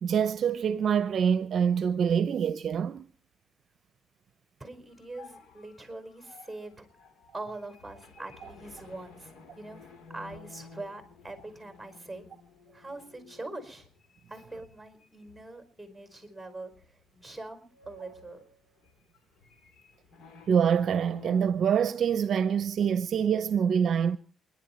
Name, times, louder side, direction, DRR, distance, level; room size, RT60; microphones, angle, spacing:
voice 1, 0.0-3.1 20.5-24.2, right 7 dB, 60° right, 0.7 m, -25 dB
voice 2, 4.6-6.9 7.3-12.2 12.7-13.9 14.3-18.4, right 2 dB, 5° right, 4.7 m, -43 dB
sound 1, 4.9-15.6 16.0-16.1 16.7-17.1 17.4-21.5, left 4 dB, 75° left, 3.6 m, -53 dB
28.5 x 11.0 x 4.4 m
cardioid pair, 90°, 0 cm